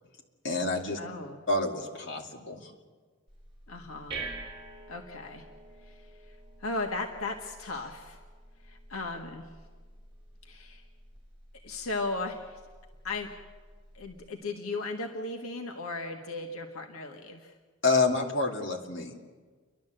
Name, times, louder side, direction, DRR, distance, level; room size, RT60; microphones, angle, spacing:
voice 1, 0.4-1.0 1.5-2.7 17.8-19.1, left 3 dB, 60° left, 0 dB, 2.4 m, -28 dB
voice 2, 1.0-1.4 3.7-4.2 4.9-5.4 5.8-8.2 8.6-9.5 10.4-10.8 11.6-12.6 13.0-13.3 13.9-17.5, left 3 dB, 90° left, 3 dB, 1.6 m, -36 dB
sound 1, 3.3-14.3, right 3 dB, 25° right, 4.0 m, -47 dB
29.5 x 11.5 x 7.8 m, 1.5 s
head